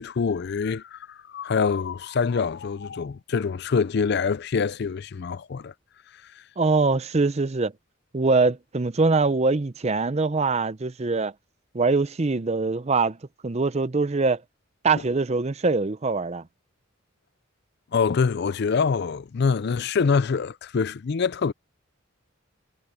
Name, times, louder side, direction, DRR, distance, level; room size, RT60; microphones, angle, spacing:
voice 1, 0.0-5.7 17.9-21.5, left 5 dB, 50° left, 0.4 m, -25 dB
voice 2, 6.6-7.7 8.1-11.3 11.7-13.2 13.4-14.4 14.8-16.4, right 3 dB, 30° right, 0.6 m, -23 dB
head